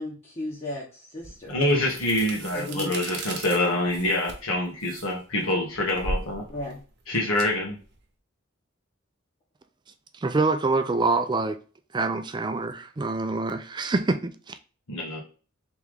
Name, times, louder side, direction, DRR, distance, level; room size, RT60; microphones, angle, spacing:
voice 1, 0.0-1.5 2.5-2.9 6.5-6.8, left 1 dB, 30° left, 1.0 m, -35 dB
sound 1, 1.2-8.0, right 2 dB, 55° right, 0.9 m, -38 dB
voice 2, 1.5-6.4 7.1-7.8 14.9-15.2, left 1 dB, 85° left, 1.5 m, -26 dB
voice 3, 10.2-11.6 11.9-14.5, right 3 dB, 20° right, 0.4 m, -25 dB
3.4 x 3.2 x 3.6 m
head